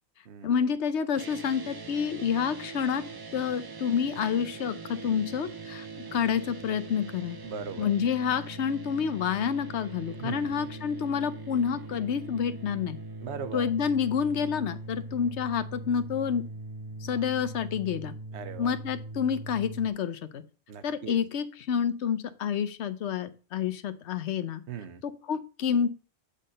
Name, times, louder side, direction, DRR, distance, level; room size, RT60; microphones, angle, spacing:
voice 1, 0.4-3.0 3.3-5.8 6.1-7.4 7.8-13.0 13.5-16.4 17.0-18.1 18.6-20.4 20.8-24.6 25.0-25.9, left 7 dB, 90° left, 1.0 m, -28 dB
sound 1, 1.1-19.9, right 3 dB, 40° right, 0.3 m, -41 dB
voice 2, 7.4-7.9 10.2-10.7 13.2-13.7 18.3-18.7 20.7-21.2 24.7-25.0, right 6 dB, 85° right, 1.1 m, -39 dB
8.4 x 3.8 x 6.4 m
omnidirectional pair, 1.1 m